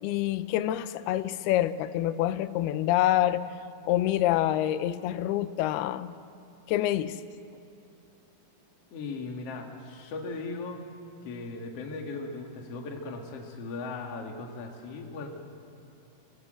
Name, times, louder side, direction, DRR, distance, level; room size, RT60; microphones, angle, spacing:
voice 1, 0.0-3.5 3.8-6.2 6.7-7.2, left 13 dB, 85° left, 13 dB, 2.7 m, -26 dB
voice 2, 8.9-10.9 11.2-15.3, left 3 dB, 50° left, 2 dB, 2.4 m, -38 dB
26.0 x 17.5 x 7.9 m, 2.7 s
omnidirectional pair, 4.5 m